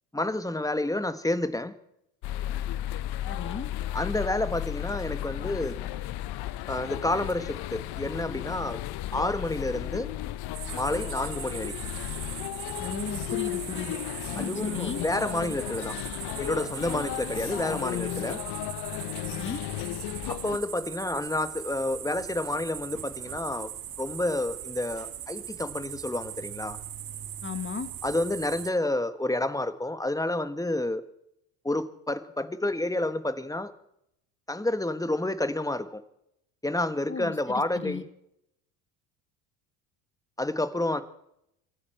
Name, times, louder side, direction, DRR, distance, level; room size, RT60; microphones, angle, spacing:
voice 1, 0.1-1.7 3.9-5.8 6.7-8.8 9.1-10.1 10.7-11.7 14.4-16.0 16.4-18.4 20.3-23.7 24.0-26.8 28.0-31.0 31.6-33.7 34.5-36.0 36.6-38.0 40.4-41.0, left 1 dB, 5° left, 11 dB, 1.5 m, -29 dB
sound 1, 2.2-20.6, left 14 dB, 55° left, 0.9 m, -34 dB
voice 2, 3.3-3.7 12.8-14.0 14.3-15.0 19.2-19.6 27.4-27.9 37.1-38.0, left 5 dB, 25° left, 10 dB, 2.0 m, -36 dB
sound 2, 10.5-28.7, right 10 dB, 45° right, 1.7 m, -40 dB
26.0 x 9.9 x 4.5 m, 0.77 s
hypercardioid pair, 70°, 48 cm